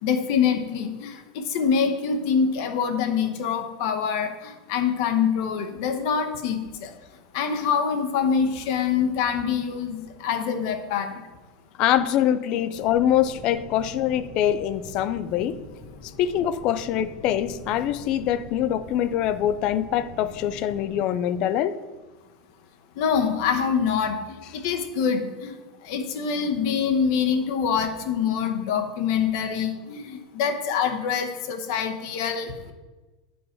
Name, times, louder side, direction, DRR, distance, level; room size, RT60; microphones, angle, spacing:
voice 1, 0.0-6.9 7.3-11.2 23.0-25.5 25.8-32.7, left 6 dB, 50° left, 6 dB, 0.9 m, -25 dB
voice 2, 11.8-15.6 16.0-21.8, left 10 dB, 30° left, 13 dB, 0.3 m, -24 dB
sound 1, 12.7-20.9, left 2 dB, 70° left, 1.4 m, -44 dB
10.0 x 5.4 x 4.4 m, 1.2 s
supercardioid pair, 180°, 2 cm